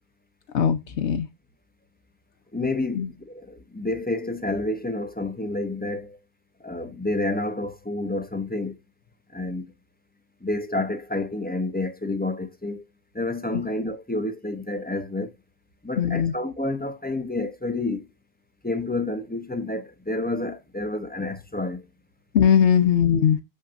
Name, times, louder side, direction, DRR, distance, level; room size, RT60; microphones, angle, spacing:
voice 1, 0.5-1.3 2.9-3.1 13.5-13.6 16.0-16.3 22.3-23.4, left 8 dB, 80° left, 1.1 m, -20 dB
voice 2, 2.5-6.2 6.6-8.8 9.3-9.7 10.4-12.9 13.1-15.3 15.8-18.1 18.6-21.9, left 2 dB, 10° left, 0.8 m, -29 dB
6.9 x 5.9 x 2.5 m
omnidirectional pair, 1.1 m